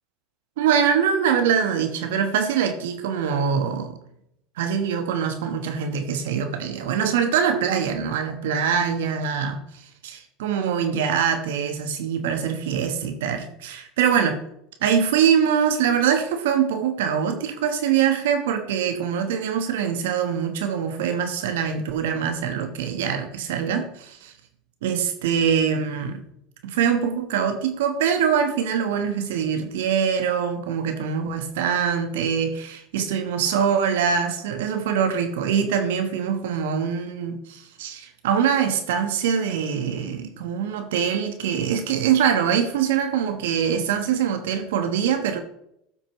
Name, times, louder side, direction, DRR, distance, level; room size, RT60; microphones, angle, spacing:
voice 1, 0.6-4.0 4.6-9.6 10.0-14.4 14.8-24.3 24.8-26.2 26.6-45.4, right 7 dB, 75° right, 6 dB, 1.1 m, -23 dB
14.5 x 6.0 x 3.1 m, 0.78 s
hypercardioid pair, 85°, 0 cm